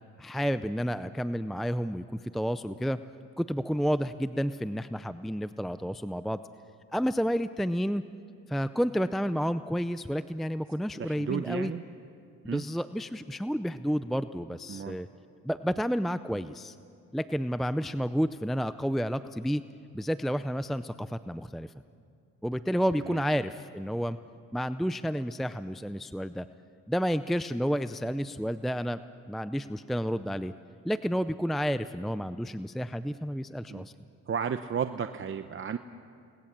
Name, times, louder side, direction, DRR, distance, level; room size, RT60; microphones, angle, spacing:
voice 1, 0.2-3.0 3.4-6.4 6.9-8.0 8.5-11.7 12.4-15.1 15.4-16.8 17.1-19.6 19.9-21.7 22.4-24.2 24.5-26.5 26.9-29.0 29.3-30.5 30.8-33.9, equal, ahead, 12 dB, 0.5 m, -30 dB
voice 2, 10.9-11.8 12.5-12.6 14.7-15.0 23.0-23.2 33.7-33.8 34.3-35.8, right 7 dB, 40° right, 8 dB, 0.8 m, -33 dB
29.5 x 19.5 x 7.5 m, 2.4 s
cardioid pair, 90°, 30 cm